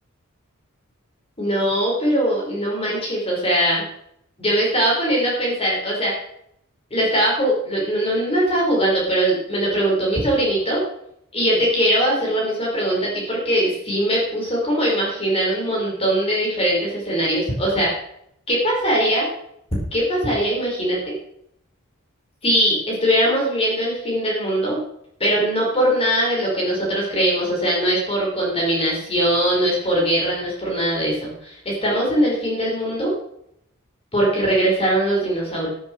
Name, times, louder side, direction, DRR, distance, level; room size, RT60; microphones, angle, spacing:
voice 1, 1.4-3.8 4.4-6.1 6.9-10.8 11.3-17.9 18.5-19.3 19.9-21.1 22.4-24.8 25.2-33.1 34.1-35.7, right 1 dB, 30° left, -3 dB, 5.2 m, -21 dB
13.0 x 12.5 x 4.7 m, 0.74 s
head